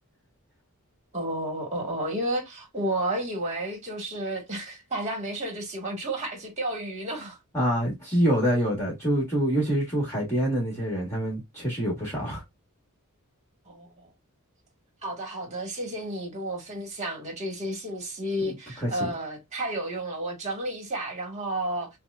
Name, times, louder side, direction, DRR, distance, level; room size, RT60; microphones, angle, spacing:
voice 1, 1.1-7.4 13.7-13.9 15.0-21.9, right 1 dB, 30° right, 1.4 m, -31 dB
voice 2, 7.5-12.4 18.4-19.1, equal, 10° left, 1.3 m, -26 dB
5.7 x 2.1 x 2.3 m
head